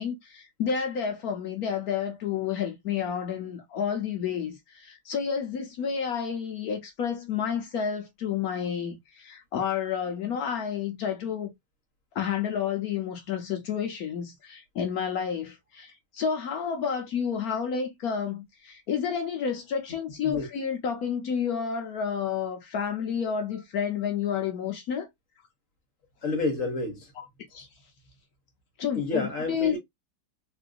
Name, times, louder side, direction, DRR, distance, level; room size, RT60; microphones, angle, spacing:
voice 1, 0.0-11.5 12.1-25.1 27.5-27.7 28.8-29.8, left 7 dB, 65° left, 1.0 m, -30 dB
voice 2, 19.9-20.5 26.2-27.1 28.9-29.8, left 3 dB, 50° left, 1.2 m, -30 dB
3.7 x 2.5 x 2.4 m
omnidirectional pair, 2.1 m